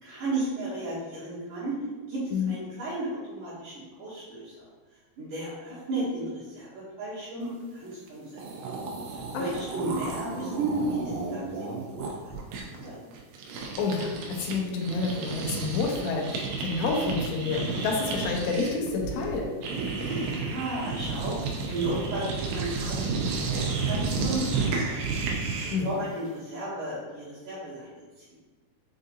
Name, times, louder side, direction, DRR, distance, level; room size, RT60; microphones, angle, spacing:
voice 1, 0.0-1.8 2.1-4.5 5.2-8.3 9.1-12.3 12.8-13.0 20.0-25.0 25.6-28.0, right 2 dB, 65° right, -10 dB, 2.2 m, -34 dB
sound 1, 8.1-8.2 8.3-14.6 14.8-25.9, right 4 dB, 80° right, 2.7 m, -32 dB
voice 2, 13.8-19.5 25.7-25.9, left 4 dB, 90° left, 0 dB, 2.8 m, -29 dB
7.1 x 2.7 x 2.6 m, 1.3 s
omnidirectional pair, 4.9 m